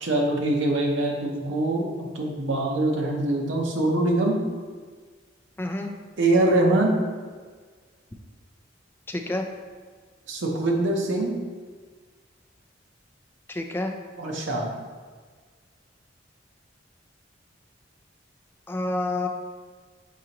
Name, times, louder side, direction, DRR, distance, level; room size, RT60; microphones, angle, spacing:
voice 1, 0.0-4.4 6.2-6.9 10.3-11.4 14.2-14.8, right 2 dB, 80° right, 0 dB, 0.8 m, -23 dB
voice 2, 5.6-5.9 9.1-9.4 13.5-13.9 18.7-19.3, left 2 dB, 10° left, 3 dB, 0.3 m, -28 dB
4.8 x 3.8 x 2.9 m, 1.5 s
head